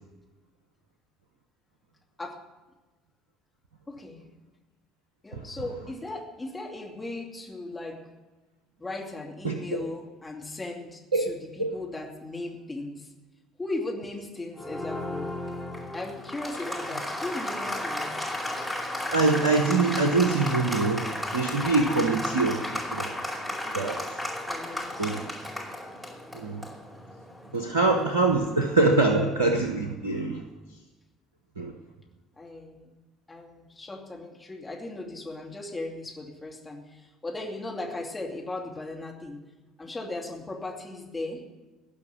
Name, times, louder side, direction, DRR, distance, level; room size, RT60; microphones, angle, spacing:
voice 1, 3.9-4.2 5.2-8.1 8.8-13.1 13.6-15.3 15.9-18.3 24.5-25.6 32.4-32.9 33.3-39.4 39.8-41.4, left 2 dB, 20° left, 0 dB, 2.6 m, -37 dB
Applause, 14.5-28.9, left 1 dB, ahead, 4.8 m, -34 dB
voice 2, 19.1-23.1 23.7-24.0 25.0-25.2 26.3-26.6 27.5-30.4 31.6-31.7, right 3 dB, 85° right, 4 dB, 0.9 m, -24 dB
17.5 x 5.9 x 9.4 m, 1.2 s
hypercardioid pair, 60°, 0 cm